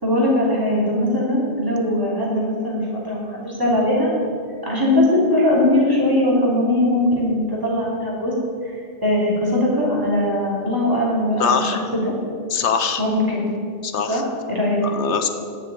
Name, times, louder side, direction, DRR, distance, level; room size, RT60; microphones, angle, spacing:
voice 1, 0.0-4.1 4.6-8.3 8.6-8.8 9.0-12.1 13.0-13.4 14.1-14.8, left 1 dB, 20° right, -5 dB, 3.2 m, -20 dB
voice 2, 11.4-11.9 12.5-13.0 13.8-14.2 14.8-15.3, left 6 dB, 80° left, 8 dB, 1.1 m, -22 dB
9.9 x 7.4 x 8.4 m, 2.3 s
omnidirectional pair, 1.2 m